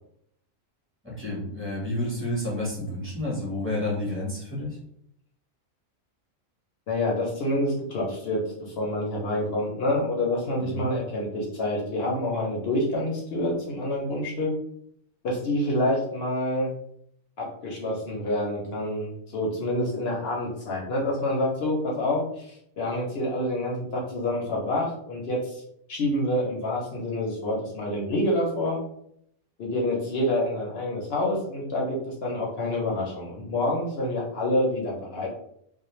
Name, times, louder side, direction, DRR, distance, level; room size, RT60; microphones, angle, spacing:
voice 1, 1.0-4.8 10.6-10.9, left 1 dB, 10° right, -5 dB, 0.8 m, -30 dB
voice 2, 6.9-14.5 15.2-16.7 17.4-25.6 25.9-28.8 29.6-35.3, left 1 dB, 60° left, -2 dB, 0.8 m, -27 dB
2.4 x 2.1 x 3.0 m, 0.71 s
omnidirectional pair, 1.4 m